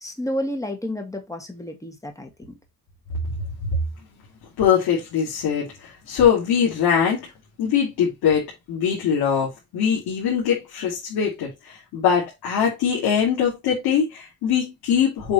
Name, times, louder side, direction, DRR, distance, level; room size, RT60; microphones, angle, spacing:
voice 1, 0.0-2.3, left 1 dB, 10° left, 1.9 m, -30 dB
voice 2, 4.6-7.3 7.6-15.3, left 8 dB, 90° left, 2.9 m, -22 dB
7.2 x 3.5 x 4.4 m
cardioid pair, 125°, 37 cm